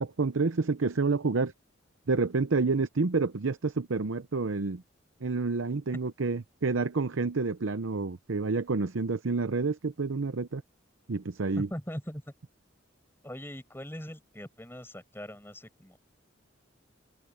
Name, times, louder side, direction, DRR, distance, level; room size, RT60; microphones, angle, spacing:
voice 1, 0.0-1.5 2.1-4.8 5.2-10.6 11.1-11.7, right 4 dB, 80° right, 0.7 m, -29 dB
voice 2, 11.6-12.2 13.2-16.0, equal, 10° left, 6.0 m, -40 dB
open air
head